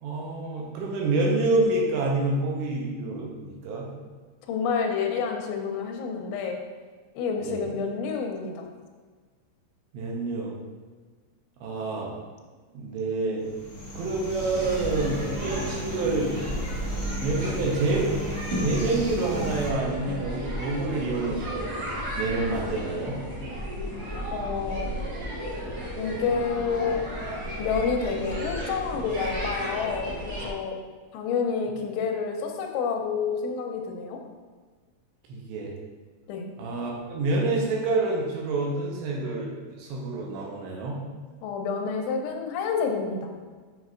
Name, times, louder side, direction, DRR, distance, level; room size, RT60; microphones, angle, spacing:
voice 1, 0.0-3.9 7.4-7.7 9.9-10.5 11.6-12.1 12.7-13.5 13.9-16.4 17.2-18.2 18.6-21.7 22.2-23.2 35.3-35.7 36.6-41.0, right 2 dB, 80° right, -2 dB, 3.0 m, -27 dB
voice 2, 4.5-6.6 7.2-8.7 24.3-24.9 26.0-27.0 27.6-30.7 31.1-34.2 36.3-36.5 41.4-43.3, left 5 dB, 85° left, 3 dB, 3.1 m, -29 dB
sound 1, 13.4-19.7, equal, 70° left, 1.9 m, -35 dB
sound 2, 14.5-30.5, equal, 60° right, 1.8 m, -33 dB
7.3 x 5.8 x 2.5 m, 1.5 s
omnidirectional pair, 5.3 m